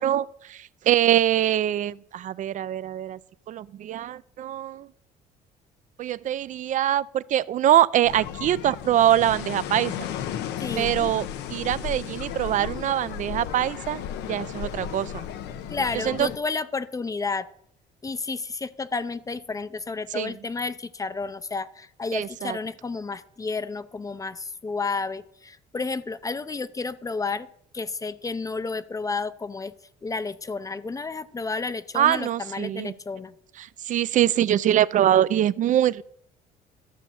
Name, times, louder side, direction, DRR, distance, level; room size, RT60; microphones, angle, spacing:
voice 1, 0.0-3.2 3.5-4.9 6.0-10.1 10.8-14.0 14.3-15.3 16.1-16.3 20.1-20.3 22.1-22.6 31.9-32.9 33.6-36.0, right 12 dB, 50° right, 0.4 m, -23 dB
sound 1, 8.0-16.4, left 9 dB, 85° left, 0.8 m, -34 dB
voice 2, 10.6-10.9 15.7-17.5 18.0-27.5 27.7-29.7 30.0-33.3, left 4 dB, 20° left, 0.5 m, -31 dB
13.0 x 6.1 x 7.0 m
cardioid pair, 110°, 17 cm